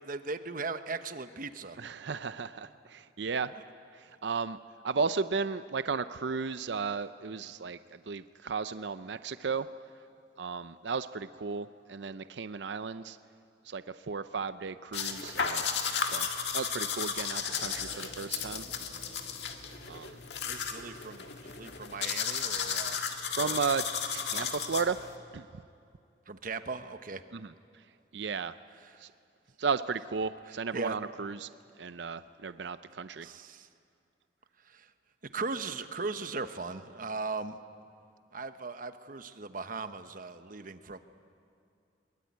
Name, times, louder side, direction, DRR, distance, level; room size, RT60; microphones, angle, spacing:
voice 1, 0.0-1.8 20.4-23.0 23.3-23.6 24.3-24.6 26.3-27.2 28.8-29.1 30.7-31.0 33.1-33.7 34.6-34.9 35.3-37.6 38.3-41.0, right 4 dB, 50° right, 10 dB, 1.0 m, -38 dB
voice 2, 1.8-3.5 3.9-4.6 4.8-9.7 10.4-13.2 13.7-15.6 16.0-16.3 16.5-18.6 19.9-20.2 23.4-23.8 24.1-25.0 25.3-25.6 27.3-27.5 28.1-28.5 29.0-29.1 29.6-31.5 31.8-33.3, right 5 dB, 70° right, 13 dB, 0.6 m, -34 dB
sound 1, 14.9-25.2, left 6 dB, 65° left, 1.9 m, -34 dB
sound 2, 17.5-23.3, equal, 40° left, 3.4 m, -54 dB
22.5 x 22.0 x 9.4 m, 2.5 s
head